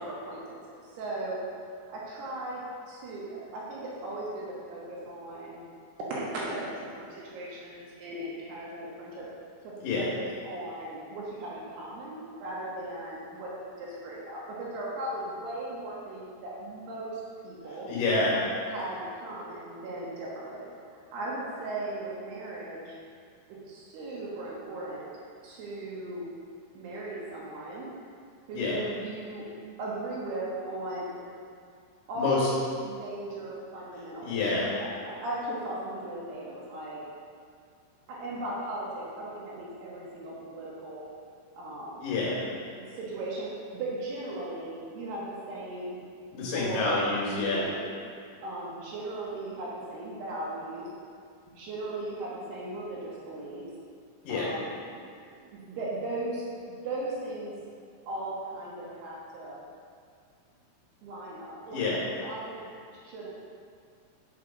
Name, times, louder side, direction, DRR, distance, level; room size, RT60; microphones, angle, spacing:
voice 1, 0.0-1.4 1.9-2.6 2.9-5.6 6.1-9.3 9.6-17.9 18.7-23.0 23.5-25.0 25.4-26.2 26.7-27.9 28.5-29.5 29.8-31.2 32.1-37.0 38.1-41.1 41.5-42.0 42.7-46.0 46.4-47.0 47.3-47.9 48.4-50.9 51.6-53.6 54.3-55.0 55.3-57.5 58.1-59.6 61.0-63.3, right 1 dB, 75° right, -6 dB, 2.5 m, -37 dB
voice 2, 17.9-18.4 28.5-28.8 32.2-32.5 34.2-34.7 42.0-42.4 46.3-47.7 54.2-54.5 61.7-62.0, left 3 dB, 70° left, -6 dB, 3.3 m, -27 dB
7.5 x 4.8 x 4.9 m, 2.2 s
omnidirectional pair, 5.7 m